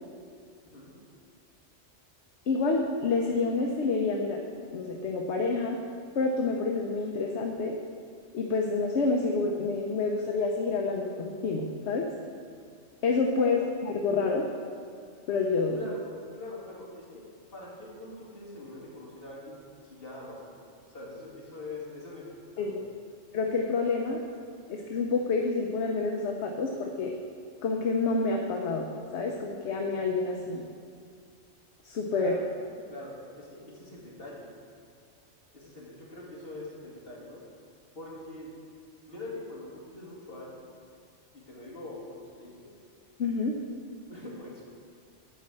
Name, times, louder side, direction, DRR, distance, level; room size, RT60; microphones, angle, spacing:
voice 1, 2.5-4.4 4.7-5.8 6.1-7.8 8.3-12.1 13.0-14.4 15.3-15.8 22.6-22.8 23.3-24.2 24.7-27.2 27.6-30.7 31.8-32.3 43.2-43.6, left 4 dB, 65° left, 1 dB, 1.0 m, -28 dB
voice 2, 15.8-17.2 17.5-22.2 22.6-22.9 32.2-32.5 32.9-34.5 35.5-37.4 37.9-38.5 39.1-40.7 41.3-42.7 44.1-44.7, left 2 dB, 50° left, -6 dB, 2.4 m, -43 dB
11.0 x 4.2 x 7.6 m, 2.2 s
omnidirectional pair, 1.3 m